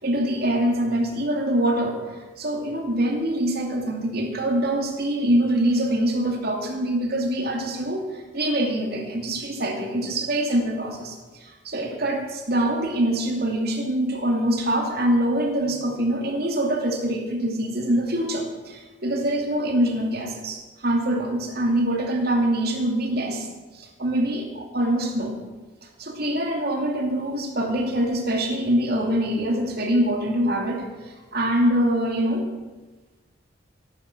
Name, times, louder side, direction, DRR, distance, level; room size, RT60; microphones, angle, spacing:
voice 1, 0.0-23.5 23.7-25.3 26.0-32.5, right 1 dB, 55° right, 1 dB, 2.7 m, -24 dB
14.0 x 11.5 x 6.2 m, 1.3 s
head